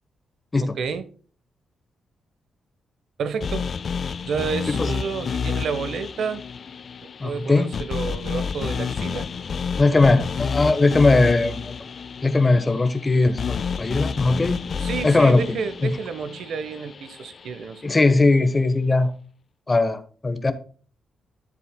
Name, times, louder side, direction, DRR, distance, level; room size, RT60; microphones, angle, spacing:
voice 1, 0.6-1.1 3.2-3.7 4.2-6.4 7.0-9.3 14.8-18.0, right 5 dB, 70° right, 1.1 m, -30 dB
sound 1, 3.4-17.6, left 6 dB, 45° left, 0.5 m, -30 dB
voice 2, 7.2-7.7 9.8-11.8 12.2-14.6 15.0-15.4 15.8-16.0 17.8-19.1 19.7-20.5, left 3 dB, 20° left, 1.2 m, -19 dB
13.0 x 7.7 x 2.3 m
wide cardioid pair, 140°, 0 cm